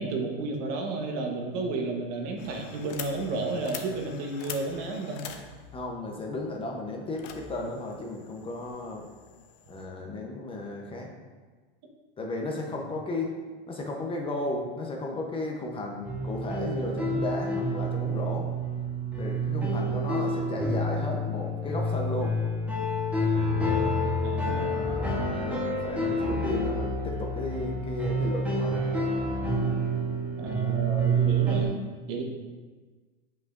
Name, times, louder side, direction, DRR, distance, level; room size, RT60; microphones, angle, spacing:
voice 1, 0.0-5.3 12.7-12.8 24.2-24.9 30.4-31.7 32.1-32.2, right 3 dB, 50° right, 2 dB, 1.2 m, -32 dB
sound 1, 2.4-9.9, left 8 dB, 55° left, 0.8 m, -44 dB
voice 2, 5.7-9.1 9.7-11.3 12.2-13.3 13.7-18.5 19.2-22.4 24.5-28.9, left 2 dB, 20° left, 0 dB, 0.8 m, -34 dB
sound 2, 16.0-31.6, right 1 dB, 5° right, 1.1 m, -28 dB
7.6 x 5.6 x 2.5 m, 1.4 s
supercardioid pair, 130°, 29 cm